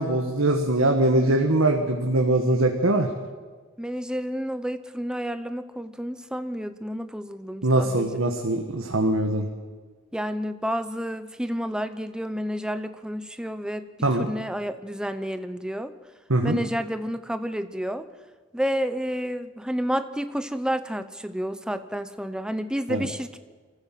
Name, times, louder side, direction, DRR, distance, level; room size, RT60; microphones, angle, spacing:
voice 1, 0.0-3.1 7.6-9.5 14.0-14.3 16.3-16.6 22.9-23.1, right 1 dB, 85° right, 3 dB, 1.6 m, -22 dB
voice 2, 3.8-8.1 10.1-13.9 14.2-15.9 16.4-18.1 18.5-23.4, equal, 5° right, 11 dB, 0.8 m, -30 dB
25.0 x 15.0 x 7.7 m, 1.4 s
head